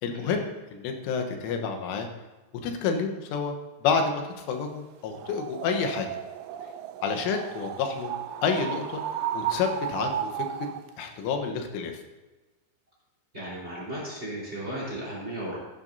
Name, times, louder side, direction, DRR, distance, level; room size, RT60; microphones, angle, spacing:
voice 1, 0.0-2.1 2.6-6.2 7.0-8.1 8.4-9.0 9.3-10.5 11.0-12.0, left 5 dB, 85° left, 4 dB, 3.6 m, -29 dB
sound 1, 5.1-10.9, right 10 dB, 85° right, 2.6 m, -34 dB
voice 2, 13.3-15.6, right 1 dB, 15° right, -5 dB, 3.6 m, -35 dB
15.0 x 10.5 x 2.7 m, 1.2 s
omnidirectional pair, 5.5 m